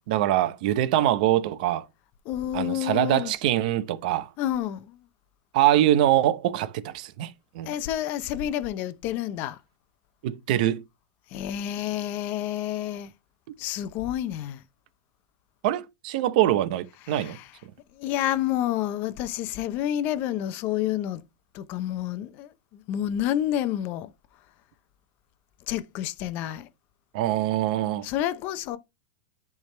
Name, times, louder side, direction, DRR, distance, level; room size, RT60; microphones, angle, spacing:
voice 1, 0.1-1.9 2.5-4.3 5.5-7.7 10.2-10.8 15.6-17.4 27.1-28.1, right 13 dB, 60° right, 0.8 m, -24 dB
voice 2, 2.2-3.3 4.4-5.1 7.6-9.6 11.3-13.1 13.6-14.6 17.0-17.6 17.9-21.2 21.5-24.1 25.7-26.7 28.0-28.8, left 12 dB, 40° left, 0.7 m, -29 dB
10.5 x 3.5 x 3.3 m
supercardioid pair, 145°, 5 cm